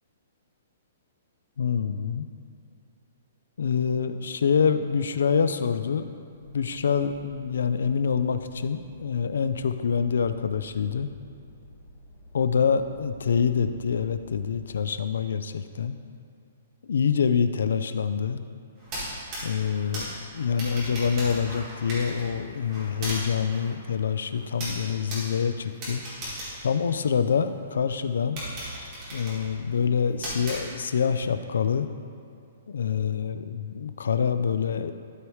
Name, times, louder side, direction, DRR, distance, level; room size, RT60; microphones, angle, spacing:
voice 1, 1.6-2.3 3.6-6.1 6.4-11.1 12.3-16.0 16.8-18.4 19.4-26.0 26.6-28.4 29.1-31.9 32.7-34.9, left 6 dB, 85° left, 11 dB, 0.4 m, -26 dB
sound 1, 6.3-14.8, left 1 dB, 35° left, 1.8 m, -50 dB
sound 2, 18.8-27.5 27.9-28.0 28.4-31.1, right 1 dB, 20° right, 1.9 m, -37 dB
12.5 x 4.9 x 3.1 m, 2.5 s
hypercardioid pair, 175°, 0 cm